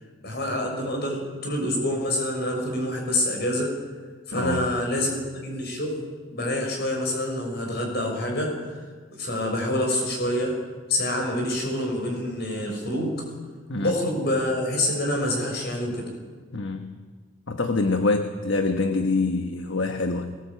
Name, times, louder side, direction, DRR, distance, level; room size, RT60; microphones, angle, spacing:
voice 1, 0.2-3.7 4.3-6.0 6.3-8.8 9.1-10.5 10.9-13.3 13.8-16.1, left 1 dB, 55° left, 1 dB, 6.3 m, -27 dB
voice 2, 4.3-4.7 13.7-14.0 16.5-17.0 17.5-20.4, left 3 dB, 70° left, 6 dB, 1.3 m, -25 dB
21.5 x 19.5 x 8.5 m, 1.5 s
head